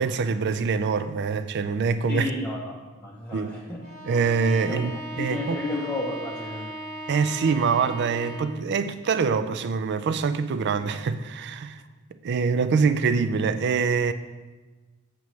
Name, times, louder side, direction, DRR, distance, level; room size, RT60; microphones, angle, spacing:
voice 1, 0.0-2.3 3.3-3.5 4.0-4.9 5.2-5.6 7.1-11.8 12.2-14.1, right 5 dB, 50° right, 0.3 m, -24 dB
voice 2, 2.1-3.9 4.7-4.9 5.1-6.7, left 2 dB, 10° left, 0.7 m, -32 dB
Bowed string instrument, 3.8-8.7, right 1 dB, 35° left, 1.0 m, -38 dB
7.5 x 6.9 x 3.1 m
head